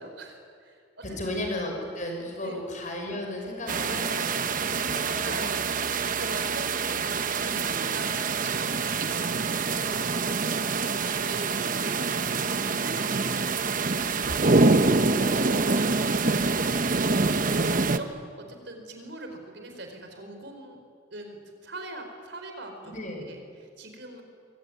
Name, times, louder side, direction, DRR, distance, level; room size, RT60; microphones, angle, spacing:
voice 1, 0.0-1.3 2.4-2.7 5.0-5.7 6.1-10.1 10.4-16.5 17.7-20.8 21.1-22.9 23.2-24.2, right 2 dB, 65° right, 4 dB, 5.0 m, -42 dB
voice 2, 1.2-5.7 6.0-6.6 10.8-11.0 16.2-16.4 16.6-17.6 22.8-23.3, left 1 dB, 40° left, 2 dB, 6.1 m, -36 dB
sound 1, 3.7-18.0, right 4 dB, 45° right, 1.1 m, -26 dB
27.0 x 22.5 x 9.6 m, 2.3 s
head